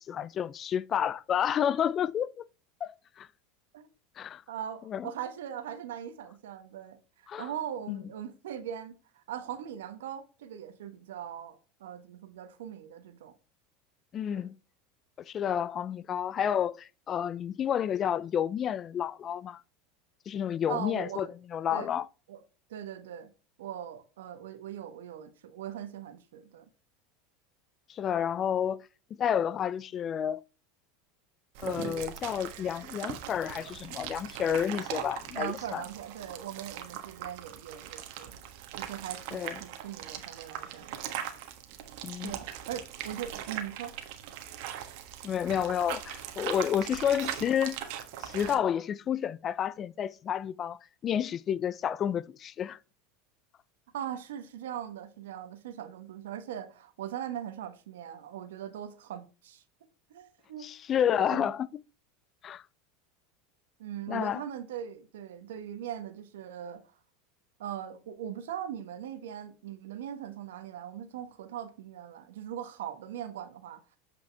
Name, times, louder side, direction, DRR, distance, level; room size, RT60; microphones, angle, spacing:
voice 1, 0.1-2.4 2.8-3.3 4.2-4.4 4.9-5.1 7.3-7.5 7.9-8.0 14.1-14.6 15.3-19.6 20.3-22.1 27.9-28.8 29.2-30.4 31.6-35.8 39.3-39.6 42.0-42.3 45.2-47.8 48.2-52.8 60.6-61.7 62.4-62.6 64.1-64.4, left 9 dB, 35° left, 0.4 m, -30 dB
voice 2, 4.5-13.3 14.3-14.5 20.7-21.3 21.7-21.9 22.3-22.4 22.7-23.3 23.6-26.6 35.3-38.3 38.7-41.3 42.1-44.0 53.9-59.6 60.1-60.7 61.1-61.5 63.8-66.8 67.6-74.0, right 10 dB, 85° right, 1.2 m, -40 dB
sound 1, 31.5-48.5, right 11 dB, 65° right, 1.3 m, -40 dB
8.2 x 5.2 x 3.4 m
hypercardioid pair, 105°, 0 cm